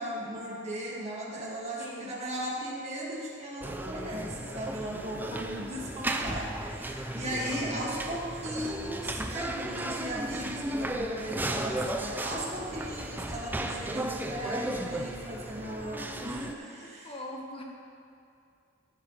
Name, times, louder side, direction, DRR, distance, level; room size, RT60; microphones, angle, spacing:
voice 1, 0.0-17.2, right 1 dB, 30° right, -4 dB, 2.0 m, -37 dB
voice 2, 1.8-2.1 5.3-5.8 15.6-16.3 17.0-17.6, left 1 dB, 25° left, 0 dB, 1.2 m, -43 dB
sound 1, 3.6-16.5, right 1 dB, 10° right, 0.4 m, -35 dB
16.0 x 9.0 x 3.2 m, 2.5 s
head